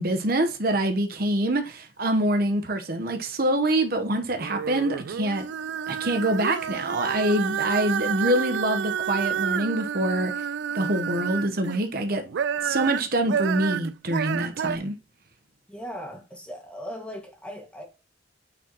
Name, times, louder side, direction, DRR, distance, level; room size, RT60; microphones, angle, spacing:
voice 1, 0.0-5.5 5.9-10.4 10.7-12.2 12.6-15.0, right 1 dB, 50° right, 1.0 m, -25 dB
sound 1, 4.3-11.8 12.2-14.8, right 8 dB, 70° right, 0.3 m, -30 dB
voice 2, 15.7-17.8, equal, 5° left, 1.9 m, -38 dB
9.0 x 4.7 x 3.0 m
head